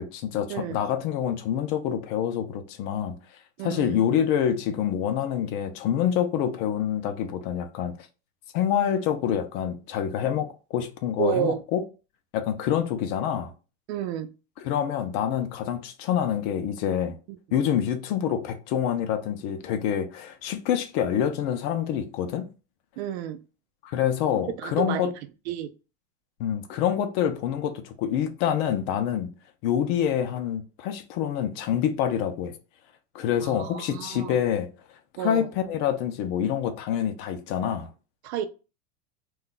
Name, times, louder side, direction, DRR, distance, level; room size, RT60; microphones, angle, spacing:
voice 1, 0.0-3.1 3.6-7.9 8.5-11.8 12.3-13.5 14.6-17.2 17.5-22.5 23.8-25.1 26.4-29.3 29.6-32.6 33.1-34.7 35.2-37.9, left 9 dB, 50° left, 0.5 m, -26 dB
voice 2, 3.6-4.0 11.2-11.6 13.9-14.3 17.3-17.4 23.0-23.4 24.6-25.1 25.5-25.7 33.4-34.4 35.2-35.5 38.2-38.5, right 10 dB, 85° right, 0.5 m, -30 dB
2.3 x 2.2 x 3.7 m
supercardioid pair, 160°, 32 cm